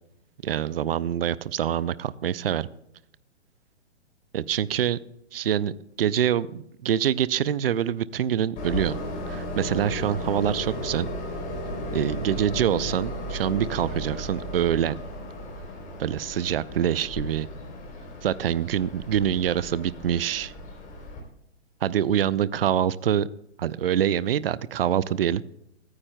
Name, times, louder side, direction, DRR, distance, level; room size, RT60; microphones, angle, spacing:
voice 1, 0.4-2.7 4.3-5.0 5.3-5.7 6.0-9.0 9.3-11.1 11.9-15.0 16.0-17.5 18.2-20.5 21.8-23.3 23.6-25.4, right 10 dB, 55° right, 19 dB, 0.6 m, -25 dB
Train, 8.6-21.2, equal, 25° left, 3.4 m, -35 dB
23.0 x 9.6 x 2.2 m, 0.78 s
figure-of-eight pair, 120°, 34 cm